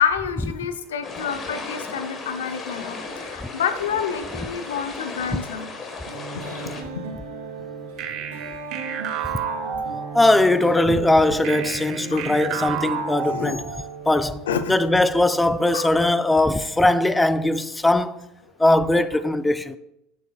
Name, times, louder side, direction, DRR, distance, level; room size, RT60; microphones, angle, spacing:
voice 1, 0.0-5.7 6.3-7.1 12.1-12.3 13.2-13.6 14.5-14.7 15.7-15.9, left 7 dB, 85° left, 0.5 m, -28 dB
sound 1, 1.0-6.8, left 3 dB, 35° left, 1.3 m, -35 dB
sound 2, 6.1-16.6, right 4 dB, 80° right, 2.1 m, -37 dB
sound 3, 8.0-10.5 11.4-14.0, right 7 dB, 55° right, 0.8 m, -31 dB
voice 2, 10.1-13.7 14.1-14.4 14.7-18.2 18.6-19.8, left 2 dB, 10° left, 0.4 m, -20 dB
7.7 x 7.5 x 2.3 m
hypercardioid pair, 90°, 0 cm